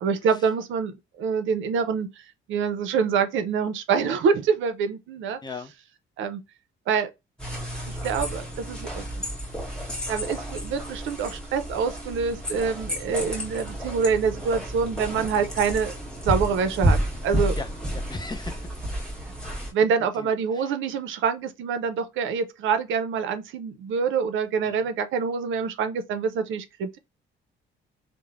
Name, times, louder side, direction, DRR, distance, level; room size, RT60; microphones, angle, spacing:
voice 1, 0.0-2.1 2.5-5.4 6.2-6.4 6.9-7.1 7.9-9.3 10.1-15.9 16.2-17.6 19.7-27.0, right 6 dB, 75° right, 0.5 m, -26 dB
voice 2, 5.4-5.7 17.6-18.8 20.0-20.7 24.7-24.9, left 3 dB, 20° left, 0.5 m, -39 dB
sound 1, 7.4-19.7, right 1 dB, 5° left, 1.2 m, -31 dB
3.1 x 2.0 x 2.4 m
cardioid pair, 90°, 20 cm